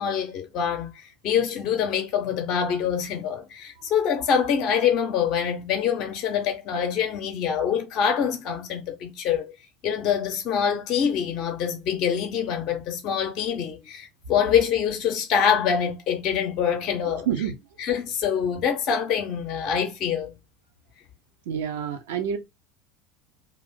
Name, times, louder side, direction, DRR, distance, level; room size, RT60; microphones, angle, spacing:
voice 1, 0.0-9.5 9.8-17.3 17.8-20.3, left 8 dB, 50° left, 0.5 m, -25 dB
voice 2, 17.1-17.5 21.5-22.4, right 8 dB, 65° right, 0.4 m, -28 dB
2.4 x 2.4 x 3.5 m
figure-of-eight pair, 70°, 0 cm